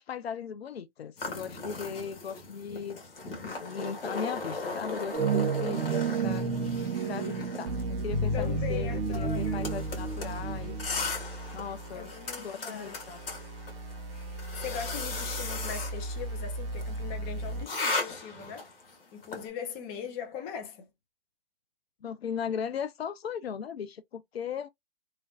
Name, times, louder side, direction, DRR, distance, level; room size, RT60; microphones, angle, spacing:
voice 1, 0.0-3.0 3.3-6.4 7.1-10.8 11.5-12.1 12.4-13.2 22.0-24.7, left 7 dB, 90° left, 0.5 m, -37 dB
sound 1, 1.2-19.5, left 3 dB, 70° left, 1.6 m, -38 dB
sound 2, 5.1-10.9, right 4 dB, 90° right, 0.7 m, -31 dB
sound 3, 7.7-17.6, right 1 dB, 30° right, 0.6 m, -37 dB
voice 2, 8.3-9.7 11.9-13.0 14.5-18.7 19.1-20.9, left 7 dB, 20° left, 0.5 m, -40 dB
3.0 x 2.5 x 2.2 m
hypercardioid pair, 135°, 30 cm